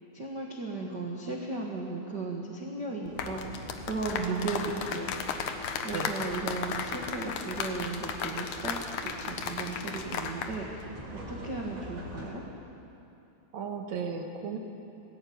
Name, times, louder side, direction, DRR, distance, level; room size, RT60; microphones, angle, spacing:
voice 1, 0.1-5.1 5.8-8.8 9.0-10.9 11.1-12.4, right 3 dB, 75° right, -1 dB, 0.9 m, -36 dB
sound 1, 3.1-10.5 10.8-11.0, left 6 dB, 70° left, 2.0 m, -35 dB
sound 2, 3.1-12.3, right 1 dB, 40° right, 4.4 m, -44 dB
voice 2, 4.1-4.8 5.9-6.2 13.5-14.6, right 7 dB, 60° right, 4 dB, 2.1 m, -35 dB
20.0 x 16.5 x 8.8 m, 2.7 s
omnidirectional pair, 4.9 m